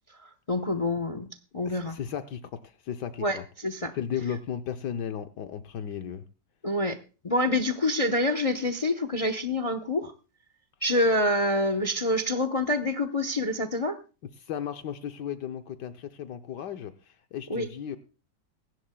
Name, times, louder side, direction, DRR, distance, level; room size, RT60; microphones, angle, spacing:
voice 1, 0.2-1.3 1.5-2.0 3.2-3.9 6.6-7.0 7.2-10.1 10.8-14.0 17.5-17.7, left 1 dB, 30° left, 10 dB, 0.6 m, -26 dB
voice 2, 1.6-3.4 3.9-6.2 14.4-18.0, left 8 dB, 75° left, 8 dB, 1.4 m, -35 dB
23.0 x 11.0 x 2.2 m, 0.33 s
omnidirectional pair, 1.9 m